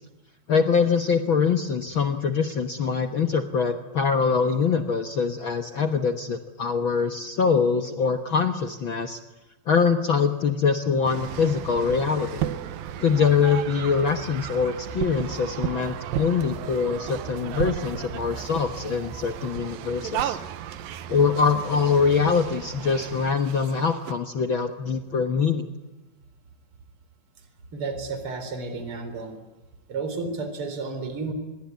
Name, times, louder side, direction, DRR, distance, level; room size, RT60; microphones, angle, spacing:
voice 1, 0.5-9.2 9.7-12.5 13.0-20.4 21.1-25.7, left 5 dB, 80° left, 7 dB, 1.1 m, -23 dB
sound 1, 11.0-24.1, right 10 dB, 75° right, 2.8 m, -34 dB
voice 2, 27.7-29.3 29.9-31.3, right 4 dB, 35° right, 8 dB, 4.3 m, -32 dB
27.0 x 21.5 x 9.4 m, 1.1 s
omnidirectional pair, 4.3 m